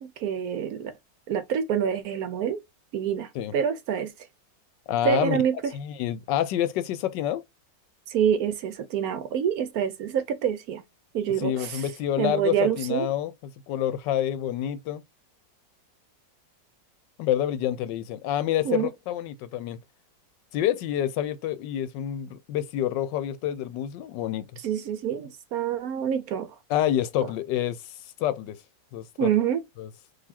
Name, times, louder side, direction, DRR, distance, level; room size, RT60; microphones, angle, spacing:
voice 1, 0.0-0.9 1.3-2.6 2.9-4.1 5.0-5.5 8.1-10.8 11.1-11.8 12.2-13.1 18.6-18.9 24.6-26.5 29.2-29.6, right 8 dB, 70° right, 0.9 m, -26 dB
voice 2, 4.9-5.4 5.7-7.4 11.4-13.3 13.7-15.0 17.2-19.8 20.5-24.5 26.7-27.9 28.2-28.6 28.9-29.3 29.8-29.9, left 11 dB, 90° left, 1.3 m, -27 dB
4.0 x 2.8 x 4.2 m
omnidirectional pair, 1.9 m